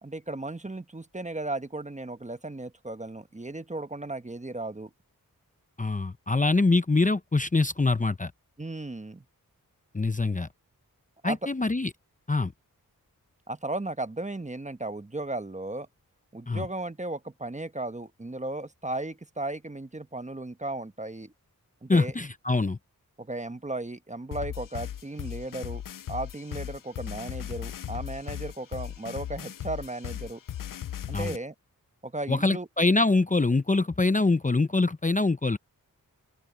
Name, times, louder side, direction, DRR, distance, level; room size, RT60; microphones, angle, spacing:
voice 1, 0.0-4.9 8.6-9.2 11.2-11.4 13.5-15.9 16.3-21.3 21.8-22.1 23.2-25.8 26.1-30.4 31.1-31.5 32.0-32.7, right 2 dB, 20° right, 1.1 m, -35 dB
voice 2, 5.8-8.3 9.9-10.5 11.2-11.9 12.3-12.5 16.5-16.7 21.9-22.8 31.1-31.3 32.3-35.6, left 3 dB, 20° left, 0.8 m, -24 dB
sound 1, 24.3-31.4, left 10 dB, 65° left, 0.5 m, -37 dB
open air
cardioid pair, 50°, 35 cm